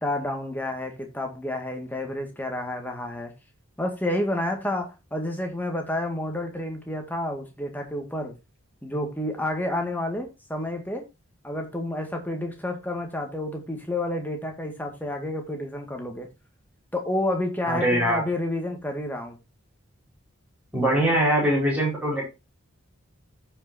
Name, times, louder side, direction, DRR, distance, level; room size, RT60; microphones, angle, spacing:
voice 1, 0.0-3.3 3.8-8.3 8.8-11.0 11.4-16.3 16.9-19.4, left 1 dB, 10° left, 1.9 m, -30 dB
voice 2, 17.7-18.2 20.7-22.3, right 1 dB, 5° right, 5.0 m, -22 dB
15.0 x 5.8 x 2.8 m
head